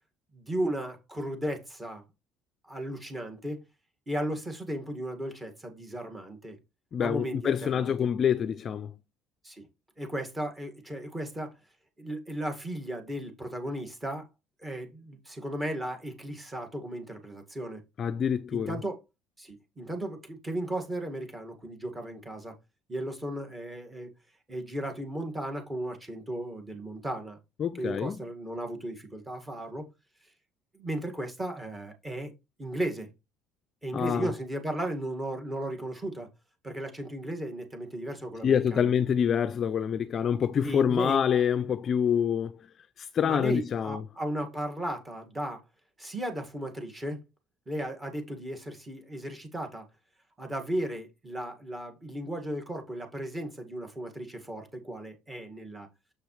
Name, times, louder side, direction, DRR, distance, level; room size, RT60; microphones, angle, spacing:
voice 1, 0.3-2.0 2.6-3.6 4.1-6.6 7.0-8.1 9.4-9.6 10.0-11.5 12.0-14.2 14.6-17.8 18.5-19.0 19.4-22.5 22.9-24.1 24.5-27.4 27.7-29.8 30.7-32.3 32.6-33.1 33.8-36.3 36.6-38.9 40.6-41.2 43.2-45.6 46.0-47.2 47.7-49.8 50.4-55.9, right 1 dB, 15° right, 2.0 m, -35 dB
voice 2, 6.9-8.9 18.0-18.8 27.6-28.2 33.9-34.3 38.4-42.6 43.0-44.0, left 8 dB, 35° left, 0.4 m, -26 dB
7.0 x 6.6 x 3.3 m
cardioid pair, 135°, 0 cm